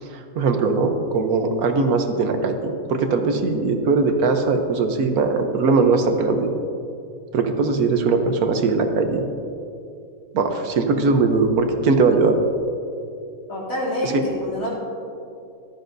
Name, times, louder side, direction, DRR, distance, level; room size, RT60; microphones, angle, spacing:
voice 1, 0.0-6.5 7.3-9.2 10.3-12.4 14.0-14.1, right 4 dB, 80° right, 6 dB, 1.3 m, -20 dB
voice 2, 13.5-14.8, left 1 dB, 65° left, -6 dB, 3.2 m, -26 dB
14.5 x 12.0 x 2.6 m, 2.6 s
omnidirectional pair, 1.6 m